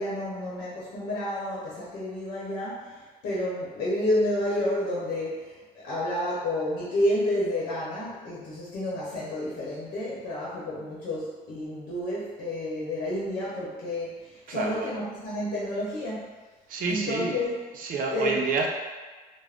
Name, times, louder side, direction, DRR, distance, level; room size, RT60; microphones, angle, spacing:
voice 1, 0.0-16.3 16.9-17.6 18.1-18.4, left 1 dB, 85° left, -6 dB, 0.8 m, -30 dB
voice 2, 14.5-14.9 16.7-17.5 17.8-18.7, right 4 dB, 55° right, 1 dB, 0.5 m, -29 dB
2.4 x 2.1 x 3.4 m, 1.3 s
cardioid pair, 110°, 17 cm